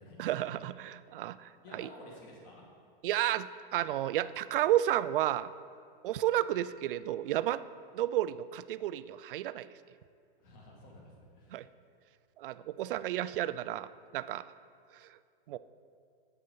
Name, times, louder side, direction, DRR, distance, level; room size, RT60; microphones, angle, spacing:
voice 1, 0.2-1.9 3.0-5.5 6.0-7.6 7.9-9.7 11.5-11.6 12.4-14.4 15.5-15.6, right 13 dB, 65° right, 14 dB, 0.4 m, -32 dB
voice 2, 1.6-2.7 10.4-11.6, left 1 dB, 30° left, -2 dB, 2.2 m, -52 dB
9.0 x 8.2 x 5.4 m, 2.3 s
hypercardioid pair, 155°, 30 cm